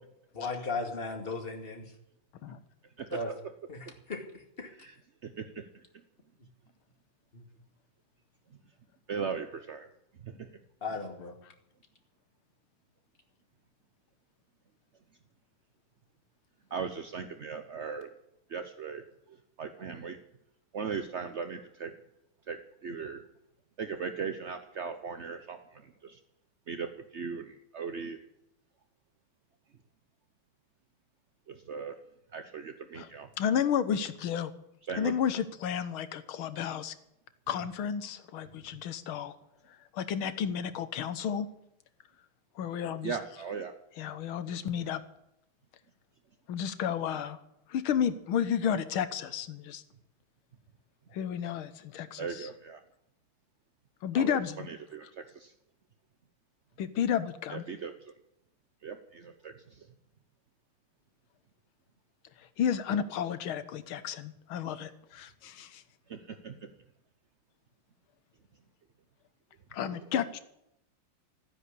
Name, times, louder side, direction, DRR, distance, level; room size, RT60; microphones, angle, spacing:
voice 1, 0.3-1.9 3.1-3.3 3.7-3.8 4.1-4.2 4.6-4.7 7.3-7.4 10.8-11.3, left 3 dB, 25° left, 3 dB, 2.3 m, -35 dB
voice 2, 5.2-5.8 9.1-9.9 10.2-10.6 16.7-18.1 18.5-20.2 20.7-21.9 22.5-23.2 23.8-26.2 26.7-28.2 31.5-32.0 32.3-33.3 34.9-35.1 43.0-43.7 52.2-52.8 54.1-55.5 57.5-58.1 58.8-59.9 66.1-66.7 69.9-70.0, right 6 dB, 60° right, 8 dB, 0.7 m, -38 dB
voice 3, 33.4-34.5 35.0-36.9 37.5-39.3 39.9-41.5 42.6-43.2 44.0-45.0 46.5-47.4 47.7-49.8 51.1-52.5 54.0-54.7 56.8-57.6 62.6-65.8 69.7-70.4, left 8 dB, 75° left, 12 dB, 1.9 m, -32 dB
14.0 x 10.0 x 8.4 m, 0.80 s
omnidirectional pair, 2.4 m